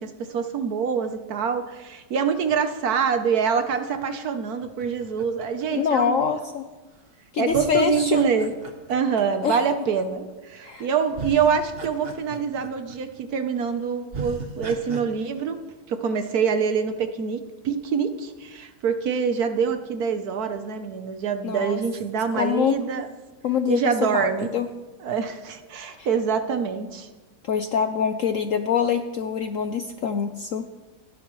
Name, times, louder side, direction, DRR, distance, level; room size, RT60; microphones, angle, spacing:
voice 1, 0.0-6.4 7.4-8.5 8.9-15.6 15.9-23.1 23.7-24.5 25.0-27.1, right 6 dB, 60° right, 8 dB, 1.2 m, -25 dB
sound 1, 4.6-6.6 7.5-10.0 10.7-10.8 11.1-13.2 13.6-13.7 14.1-15.0, right 3 dB, 35° right, 1.2 m, -38 dB
voice 2, 5.7-6.7 7.3-8.3 9.4-9.6 10.6-10.9 21.4-21.8 22.4-22.8 23.4-24.3 24.5-24.7 26.0-26.1 27.4-30.7, left 7 dB, 65° left, 8 dB, 0.8 m, -24 dB
27.0 x 10.5 x 3.1 m, 1.3 s
omnidirectional pair, 2.0 m